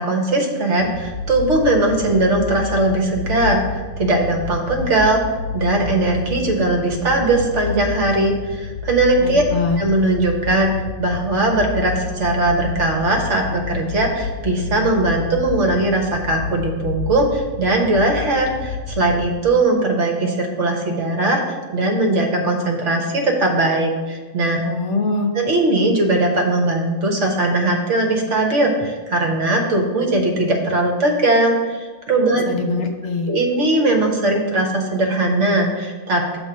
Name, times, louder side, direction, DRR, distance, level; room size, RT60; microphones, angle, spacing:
voice 1, 0.0-5.2 5.5-9.4 9.8-10.7 11.0-24.6 25.3-32.4 33.3-36.4, right 2 dB, 65° right, 1 dB, 1.4 m, -19 dB
sound 1, 0.8-19.4, left 6 dB, 85° left, 1.0 m, -30 dB
voice 2, 9.2-9.8 24.6-25.3 32.5-33.3, left 3 dB, 60° left, 4 dB, 1.0 m, -23 dB
7.2 x 3.8 x 6.1 m, 1.3 s
omnidirectional pair, 1.4 m